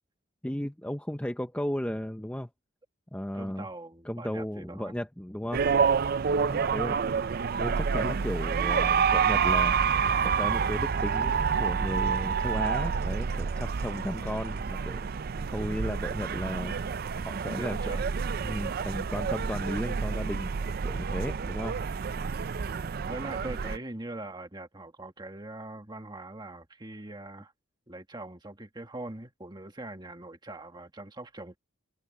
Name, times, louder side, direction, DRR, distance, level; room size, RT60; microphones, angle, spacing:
voice 1, 0.4-2.5 3.1-3.7 4.0-5.6 6.3-7.0 7.3-9.7 10.2-15.0 15.5-16.7 17.2-18.1 18.4-20.5 20.8-21.8, equal, 5° left, 0.7 m, -35 dB
voice 2, 3.3-5.0 6.2-7.0 13.8-14.1 15.3-15.6 17.6-18.2 23.0-27.5 27.9-31.6, right 2 dB, 20° right, 1.7 m, -42 dB
sound 1, 5.5-23.8, right 6 dB, 45° right, 0.4 m, -28 dB
head